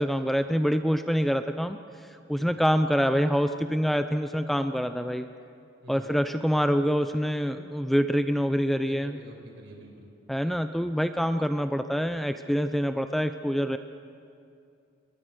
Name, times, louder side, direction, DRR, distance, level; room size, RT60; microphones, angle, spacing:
voice 1, 0.0-1.8 2.3-5.3 5.9-9.2 10.3-13.8, equal, ahead, 8 dB, 0.6 m, -26 dB
voice 2, 8.9-10.1, right 1 dB, 65° right, 2 dB, 5.3 m, -47 dB
29.5 x 22.5 x 6.5 m, 2.5 s
head